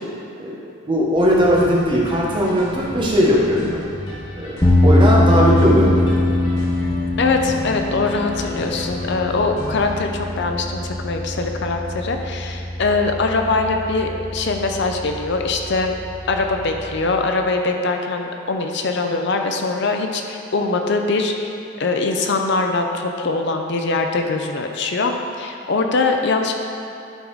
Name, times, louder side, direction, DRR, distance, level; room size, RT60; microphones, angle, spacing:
voice 1, 0.9-3.8 4.3-6.1, equal, 25° right, -4 dB, 1.1 m, -18 dB
sound 1, 1.1-10.0, left 1 dB, 80° left, 1.4 m, -35 dB
sound 2, 4.6-17.1, left 1 dB, 15° left, 0.8 m, -22 dB
voice 2, 7.2-15.9 16.3-21.5 21.8-26.5, left 3 dB, 55° left, 4 dB, 0.5 m, -22 dB
11.5 x 4.0 x 4.7 m, 2.6 s
head